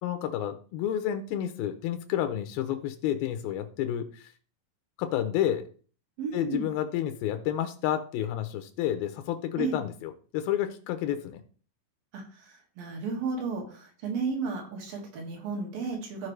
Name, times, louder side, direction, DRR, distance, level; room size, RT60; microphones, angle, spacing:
voice 1, 0.0-4.3 5.0-5.7 6.3-11.4, left 11 dB, 90° left, 8 dB, 2.6 m, -30 dB
voice 2, 6.2-6.7 9.6-9.8 12.1-16.3, right 4 dB, 75° right, 1 dB, 3.6 m, -33 dB
14.5 x 4.9 x 3.2 m, 0.40 s
omnidirectional pair, 4.1 m